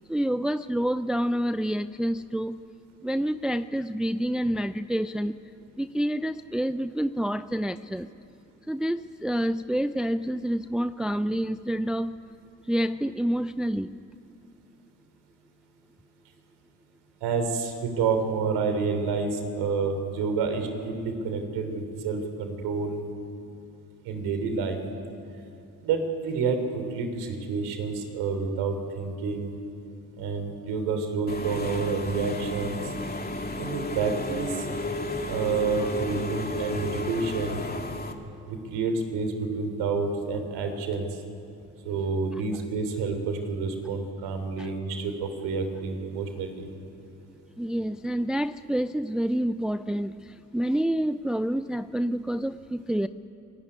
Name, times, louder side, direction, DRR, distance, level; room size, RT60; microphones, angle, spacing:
voice 1, 0.1-2.6 3.0-5.4 5.8-8.1 8.7-12.2 12.7-13.9 44.6-44.7 47.6-53.1, equal, ahead, 12 dB, 0.5 m, -28 dB
voice 2, 17.2-23.0 24.0-24.8 25.8-29.5 30.2-32.8 33.6-34.6 35.3-37.6 38.5-41.1 41.8-46.7, right 4 dB, 90° right, 6 dB, 3.4 m, -29 dB
Engine / Mechanisms, 31.3-38.1, left 2 dB, 25° left, 2.7 m, -33 dB
27.0 x 18.0 x 9.8 m, 2.8 s
supercardioid pair, 65°, 38 cm